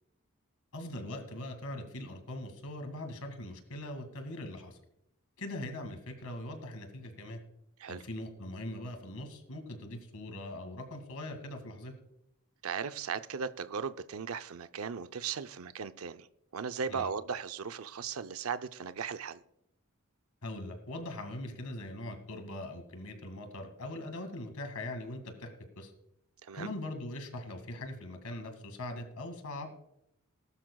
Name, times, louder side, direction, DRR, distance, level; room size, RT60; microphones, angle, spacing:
voice 1, 0.7-4.8 5.4-7.4 7.9-11.9 16.9-17.1 20.4-25.9 26.5-29.7, left 1 dB, 85° left, 6 dB, 2.0 m, -41 dB
voice 2, 12.6-16.3 16.5-19.4 26.4-26.7, right 6 dB, 75° right, 11 dB, 0.5 m, -37 dB
19.5 x 12.0 x 2.3 m, 0.79 s
head